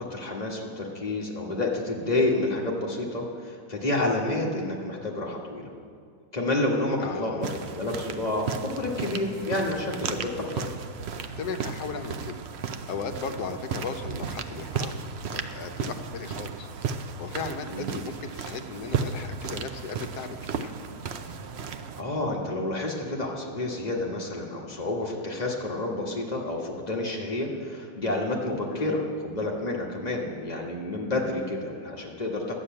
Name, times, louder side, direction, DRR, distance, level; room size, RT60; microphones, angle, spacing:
voice 1, 0.0-5.7 6.3-10.6 17.7-17.9 22.0-32.6, left 2 dB, 25° left, -2 dB, 1.5 m, -29 dB
voice 2, 7.0-7.6 11.4-12.4 12.9-14.9 15.3-16.7 17.2-20.7 28.7-29.0, left 5 dB, 70° left, 7 dB, 1.3 m, -36 dB
sound 1, 7.4-22.0, right 6 dB, 80° right, 0.5 m, -34 dB
11.5 x 7.3 x 8.7 m, 2.3 s
omnidirectional pair, 1.8 m